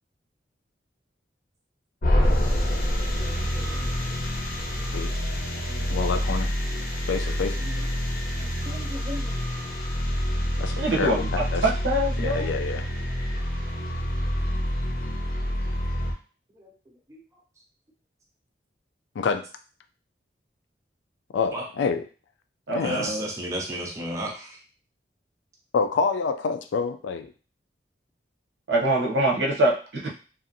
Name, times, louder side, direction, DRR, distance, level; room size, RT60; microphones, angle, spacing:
sound 1, 2.0-16.1, equal, 50° left, 0.6 m, -27 dB
voice 1, 3.6-3.9 4.6-5.0 5.7-6.0 7.3-7.4 7.6-7.8 8.4-9.6 16.5-16.7 17.1-17.2 21.5-21.6 22.8-24.6, equal, 15° right, -1 dB, 0.4 m, -35 dB
voice 2, 5.9-6.5 7.1-7.6 10.6-11.6 12.2-12.9 19.2-19.5 21.3-22.0 22.7-23.1 25.7-27.3, left 5 dB, 85° left, 9 dB, 0.3 m, -27 dB
voice 3, 10.8-12.4 22.7-23.3 28.7-30.1, right 1 dB, 75° right, -1 dB, 0.7 m, -24 dB
2.6 x 2.4 x 2.6 m, 0.37 s
head